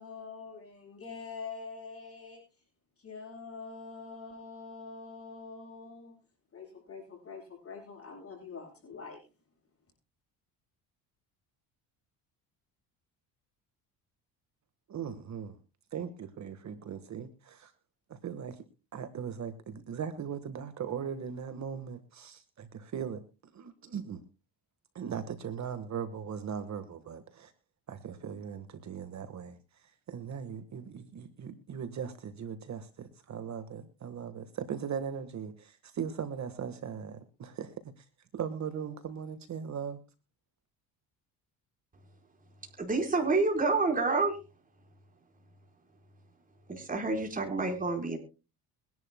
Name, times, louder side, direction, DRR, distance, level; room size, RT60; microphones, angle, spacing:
voice 1, 0.0-2.4 3.0-6.1 6.5-9.2, left 4 dB, 35° left, 1 dB, 7.9 m, -45 dB
voice 2, 14.9-15.6 15.9-17.7 18.1-18.6 18.9-23.2 23.5-24.2 24.9-27.5 27.9-29.6 30.1-38.0 38.3-40.0, right 7 dB, 45° right, 10 dB, 1.6 m, -39 dB
voice 3, 42.8-44.4 46.7-48.2, right 3 dB, 20° right, 1 dB, 4.5 m, -28 dB
23.0 x 11.0 x 2.2 m, 0.31 s
supercardioid pair, 85°, 38 cm